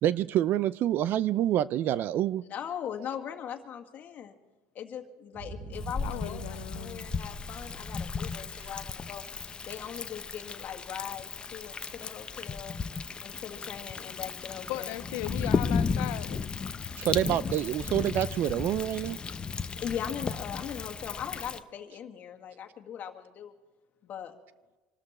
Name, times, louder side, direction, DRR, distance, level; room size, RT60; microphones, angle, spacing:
voice 1, 0.0-2.5 17.0-19.2, right 12 dB, 50° right, 0.5 m, -27 dB
voice 2, 2.5-4.3 4.8-9.2 9.6-12.8 13.2-14.9 19.8-23.5 24.0-24.3, left 9 dB, 40° left, 1.9 m, -40 dB
Boom, 5.3-9.6, right 2 dB, 65° right, 7.3 m, -44 dB
Thunder, 5.7-21.6, left 5 dB, 20° left, 0.8 m, -35 dB
voice 3, 6.0-7.1 14.7-16.5, left 17 dB, 70° left, 0.5 m, -37 dB
25.5 x 13.0 x 4.3 m
supercardioid pair, 115°, 4 cm